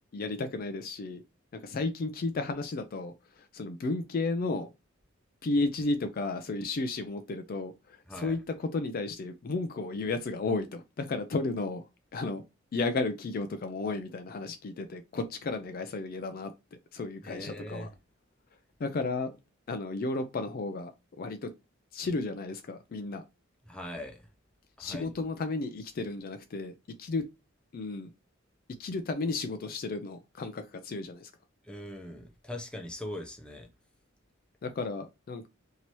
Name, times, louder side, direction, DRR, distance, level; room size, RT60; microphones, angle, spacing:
voice 1, 0.1-1.2 1.5-4.7 5.4-11.8 12.1-12.4 12.7-16.5 16.9-17.9 18.8-19.3 19.7-20.9 21.2-21.5 21.9-23.2 24.8-26.7 27.0-27.3 27.7-28.1 28.8-31.3 34.6-35.5, left 3 dB, 45° left, 0.4 m, -33 dB
voice 2, 17.2-17.9 23.7-24.2 24.8-25.1 31.6-33.7, left 1 dB, 5° left, 0.6 m, -41 dB
2.9 x 2.7 x 4.5 m
head